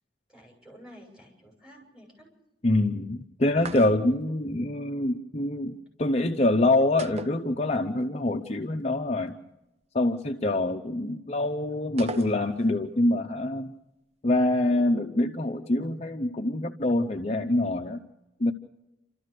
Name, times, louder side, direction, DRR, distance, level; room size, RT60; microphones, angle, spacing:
voice 1, 0.3-2.3, equal, 5° right, -1 dB, 6.5 m, -51 dB
voice 2, 2.6-9.3 9.9-13.7 14.2-18.0 18.4-18.5, left 2 dB, 35° left, 4 dB, 0.8 m, -25 dB
sound 1, 3.6-4.3 7.0-8.0 8.3-8.4 12.0-12.8, right 2 dB, 35° right, 0.6 m, -39 dB
29.0 x 13.5 x 6.7 m, 0.95 s
head